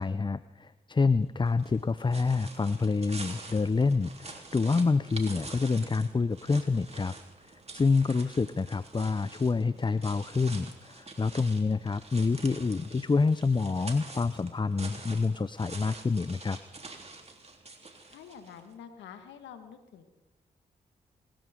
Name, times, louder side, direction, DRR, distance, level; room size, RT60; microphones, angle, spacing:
voice 1, 0.0-7.1 7.7-16.6, left 4 dB, 25° left, 16 dB, 0.6 m, -27 dB
sound 1, 1.5-18.7, right 3 dB, 35° right, 3.4 m, -46 dB
voice 2, 18.1-20.1, left 8 dB, 85° left, 8 dB, 1.7 m, -47 dB
26.5 x 14.0 x 3.8 m, 1.1 s
hypercardioid pair, 40°, 19 cm